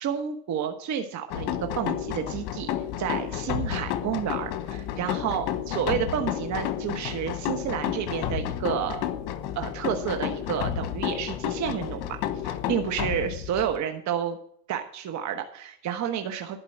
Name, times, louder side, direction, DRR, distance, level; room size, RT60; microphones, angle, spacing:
voice 1, 0.0-2.7 3.0-9.0 9.5-14.4 14.7-16.6, right 8 dB, 40° right, 6 dB, 1.2 m, -30 dB
sound 1, 1.3-13.8, left 10 dB, 60° left, 1.3 m, -31 dB
11.5 x 4.9 x 8.5 m, 0.65 s
supercardioid pair, 110°, 44 cm